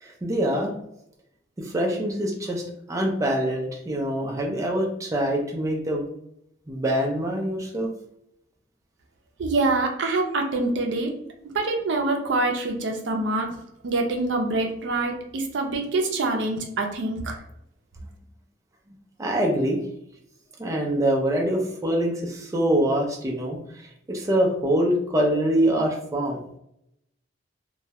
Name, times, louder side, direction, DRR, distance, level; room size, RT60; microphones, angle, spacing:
voice 1, 0.0-0.7 1.6-2.6 2.9-6.0 6.7-7.9 19.2-19.8 20.6-26.4, right 1 dB, 15° right, 0 dB, 0.4 m, -24 dB
voice 2, 9.4-11.1 11.5-13.6 13.8-17.4, right 2 dB, 75° right, 2 dB, 0.5 m, -25 dB
2.2 x 2.0 x 2.7 m, 0.76 s
head